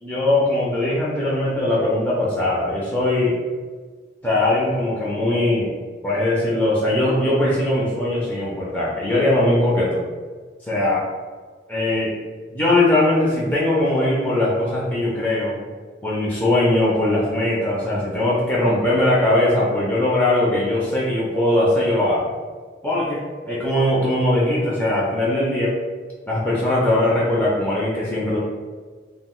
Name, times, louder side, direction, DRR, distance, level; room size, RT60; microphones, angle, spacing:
voice 1, 0.0-3.4 4.2-5.7 6.0-10.0 10.7-11.0 11.7-12.1 12.5-15.6 16.0-22.3 22.8-23.2 23.5-25.7 26.3-28.4, left 1 dB, 10° left, -7 dB, 0.4 m, -20 dB
2.3 x 2.0 x 3.6 m, 1.5 s
head